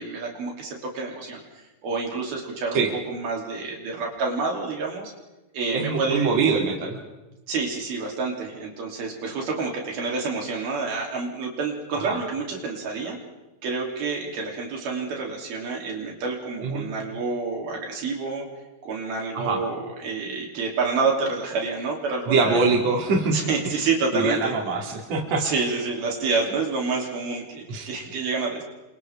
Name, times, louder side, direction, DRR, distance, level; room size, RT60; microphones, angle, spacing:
voice 1, 0.0-1.4 1.8-5.1 5.5-6.3 7.5-13.2 13.6-18.5 18.8-22.7 23.3-24.5 25.4-28.6, right 4 dB, 75° right, -1 dB, 5.0 m, -28 dB
voice 2, 5.7-7.0 11.9-12.2 16.6-16.9 19.3-19.6 22.3-23.4 24.1-25.5 27.7-27.9, right 4 dB, 45° right, 0 dB, 4.0 m, -23 dB
29.0 x 26.0 x 3.7 m, 1.0 s
omnidirectional pair, 4.3 m